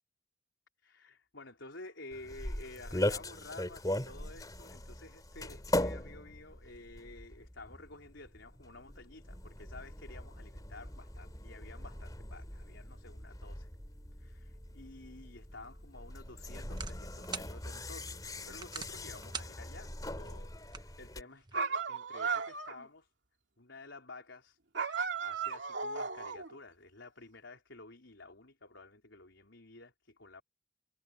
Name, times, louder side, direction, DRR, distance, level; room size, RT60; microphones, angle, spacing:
voice 1, 0.8-13.7 14.2-18.2 18.5-23.1 23.6-24.6 24.9-30.4, left 2 dB, 75° left, 4.2 m, -52 dB
sound 1, 2.1-21.2, left 1 dB, 20° left, 3.2 m, -40 dB
sound 2, 15.5-21.6, right 5 dB, 20° right, 1.2 m, -48 dB
sound 3, 21.5-22.9 24.7-26.5, right 5 dB, 65° right, 2.7 m, -35 dB
head